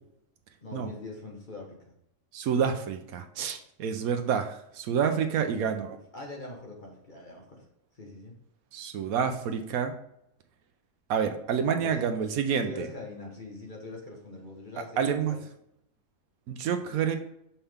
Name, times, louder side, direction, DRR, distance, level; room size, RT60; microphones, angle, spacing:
voice 1, 0.6-1.8 5.4-7.7 7.9-8.3 11.7-15.0 15.3-15.4 16.8-16.9, left 2 dB, 35° left, -1 dB, 1.3 m, -43 dB
voice 2, 2.3-6.0 8.7-9.9 11.1-12.9 15.0-15.3 16.5-17.2, right 7 dB, 90° right, 6 dB, 1.1 m, -28 dB
5.7 x 5.7 x 3.5 m, 0.77 s
omnidirectional pair, 1.4 m